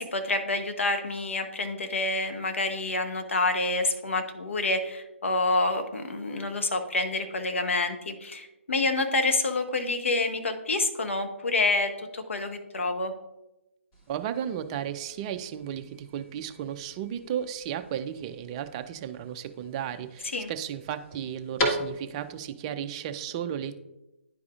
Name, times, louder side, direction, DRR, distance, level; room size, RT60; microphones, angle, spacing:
voice 1, 0.0-13.1 20.3-20.5, left 2 dB, 70° left, 6 dB, 0.9 m, -28 dB
sound 1, 13.9-22.4, equal, 25° left, 1.7 m, -38 dB
voice 2, 14.1-23.8, right 9 dB, 30° right, 9 dB, 0.4 m, -34 dB
10.5 x 4.8 x 2.4 m, 0.97 s
figure-of-eight pair, 135°, 7 cm